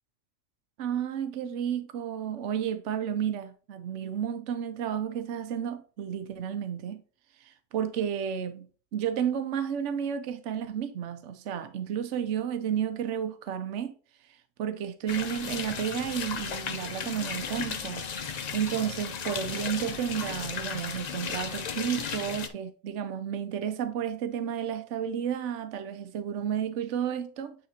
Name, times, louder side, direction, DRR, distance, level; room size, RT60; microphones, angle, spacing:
voice 1, 0.8-7.0 7.4-8.7 8.9-13.9 14.6-18.1 18.5-27.6, right 8 dB, 65° right, 1.0 m, -32 dB
sound 1, 15.1-22.5, left 6 dB, 60° left, 0.4 m, -35 dB
8.7 x 3.8 x 2.9 m
omnidirectional pair, 1.4 m